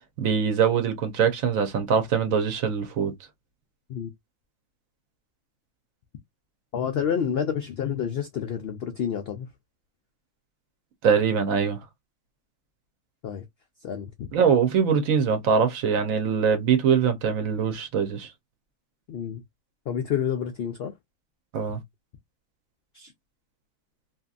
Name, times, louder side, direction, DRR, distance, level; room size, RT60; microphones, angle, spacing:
voice 1, 0.2-3.1 11.0-11.8 14.3-18.3 21.5-21.8, right 6 dB, 70° right, 1.1 m, -23 dB
voice 2, 6.7-9.5 13.2-13.4 13.8-14.3 19.1-19.4 19.9-20.9 22.9-23.1, left 8 dB, 75° left, 0.5 m, -29 dB
2.8 x 2.6 x 2.3 m
omnidirectional pair, 1.6 m